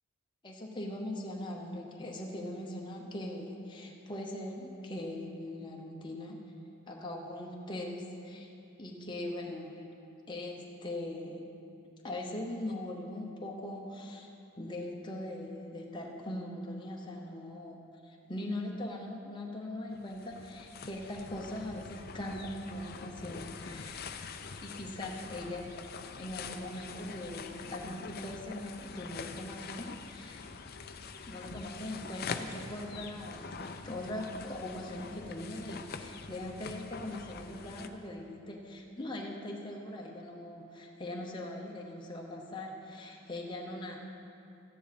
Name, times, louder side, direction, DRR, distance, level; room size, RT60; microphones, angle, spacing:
voice 1, 0.4-6.4 6.9-8.5 8.8-9.9 10.3-11.4 12.0-14.3 14.6-17.8 18.0-24.0 24.6-25.7 26.2-30.5 31.3-44.0, left 1 dB, 20° left, -1 dB, 0.8 m, -41 dB
sound 1, 19.9-37.9, left 5 dB, 45° left, 0.5 m, -44 dB
13.5 x 10.0 x 4.2 m, 2.7 s
head